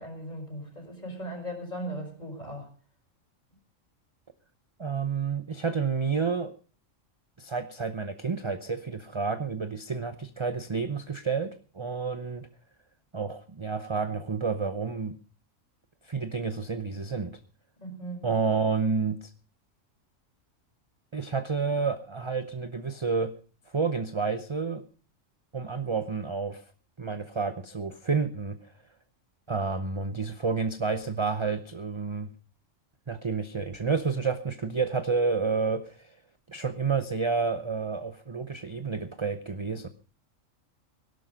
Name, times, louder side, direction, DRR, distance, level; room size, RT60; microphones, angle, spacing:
voice 1, 0.0-2.7 17.8-18.3, right 1 dB, 35° left, 2 dB, 5.2 m, -38 dB
voice 2, 4.8-6.5 7.4-12.5 13.1-15.1 16.0-17.3 18.2-19.3 21.1-23.3 23.7-24.8 25.5-26.6 27.0-28.6 29.5-32.3 33.1-36.1 36.5-39.9, right 5 dB, 30° right, 10 dB, 0.7 m, -30 dB
17.0 x 11.5 x 5.2 m, 0.39 s
omnidirectional pair, 1.4 m